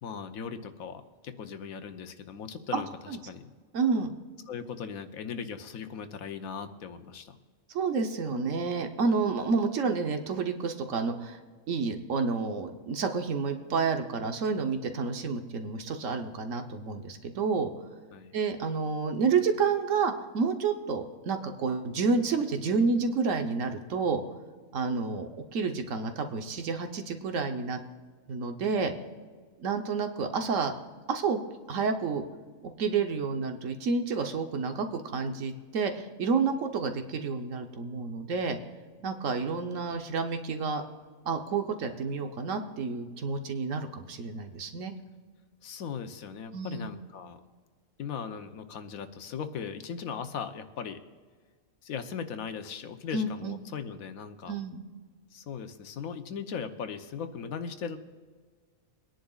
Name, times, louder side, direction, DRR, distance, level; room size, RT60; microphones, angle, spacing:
voice 1, 0.0-3.5 4.5-7.4 18.1-18.3 45.6-47.4 48.0-51.0 51.8-54.5 55.3-58.0, left 6 dB, 80° left, 8 dB, 1.2 m, -38 dB
voice 2, 2.7-3.2 3.7-4.1 7.7-11.4 11.7-17.7 18.3-24.2 24.7-27.8 28.3-28.9 29.6-30.7 31.1-31.4 31.7-32.2 32.8-38.6 39.0-40.8 41.2-44.9 46.5-46.9 53.1-53.6 54.5-54.8, right 4 dB, 65° right, 6 dB, 1.3 m, -29 dB
23.5 x 10.5 x 2.4 m, 1.6 s
omnidirectional pair, 1.5 m